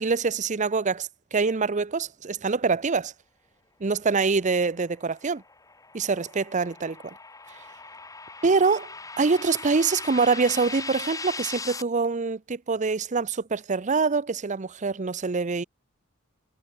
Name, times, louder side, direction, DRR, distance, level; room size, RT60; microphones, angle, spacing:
voice 1, 0.0-3.1 3.8-5.4 5.9-7.1 8.4-15.6, right 4 dB, 35° right, 0.6 m, -25 dB
sound 1, 5.0-11.8, left 3 dB, 15° left, 2.9 m, -39 dB
head